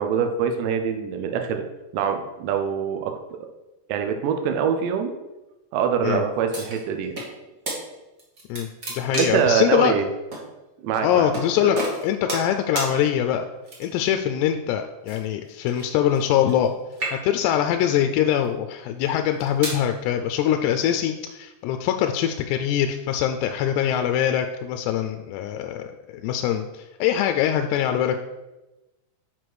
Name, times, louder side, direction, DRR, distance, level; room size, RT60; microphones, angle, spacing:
voice 1, 0.0-1.7 1.9-3.1 3.9-5.1 5.7-7.1 9.1-10.1 10.8-11.3 11.6-11.7, right 7 dB, 85° right, 6 dB, 2.9 m, -24 dB
sound 1, 6.5-7.3 7.7-7.8 8.2-9.5 10.3-10.4 11.3-11.5 11.8-12.5 12.8-12.9 13.6-14.1 15.1-16.7 16.9-17.5 18.2-18.5 19.1-19.8, right 2 dB, 35° right, 1.6 m, -31 dB
voice 2, 8.5-9.9 11.0-11.8 12.0-13.5 13.8-16.7 17.2-28.3, left 10 dB, 85° left, 6 dB, 2.6 m, -23 dB
8.1 x 4.8 x 6.1 m, 1.0 s
omnidirectional pair, 5.0 m